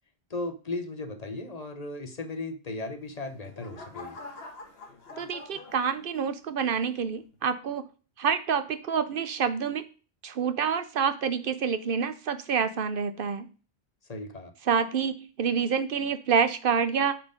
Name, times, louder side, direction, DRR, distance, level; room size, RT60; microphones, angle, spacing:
voice 1, 0.3-4.2 14.1-14.5, left 2 dB, 40° left, 8 dB, 0.9 m, -36 dB
sound 1, 2.9-6.5 7.0-7.4, left 3 dB, 70° left, 1.5 m, -46 dB
voice 2, 5.2-7.8 8.2-9.8 10.2-13.5 14.7-17.1, right 6 dB, 60° right, 11 dB, 0.8 m, -27 dB
8.8 x 4.3 x 5.0 m, 0.37 s
omnidirectional pair, 1.1 m